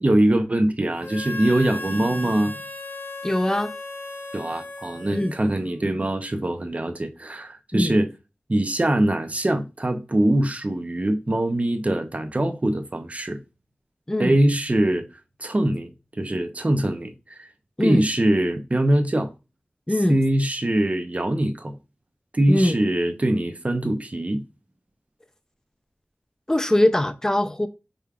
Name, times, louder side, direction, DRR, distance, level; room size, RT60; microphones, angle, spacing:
voice 1, 0.0-2.5 4.3-8.1 8.5-13.4 14.2-15.1 15.4-15.9 16.2-17.5 17.8-19.3 20.1-21.8 22.3-24.4, right 1 dB, 35° right, 0.6 m, -23 dB
Harmonica, 1.0-5.8, left 2 dB, 65° left, 0.8 m, -36 dB
voice 2, 3.2-3.7 5.1-5.3 7.7-7.9 14.1-14.4 17.8-18.0 19.9-20.2 22.5-22.8 26.5-27.7, left 1 dB, 15° left, 0.5 m, -21 dB
5.0 x 3.4 x 2.4 m
wide cardioid pair, 65°, 4 cm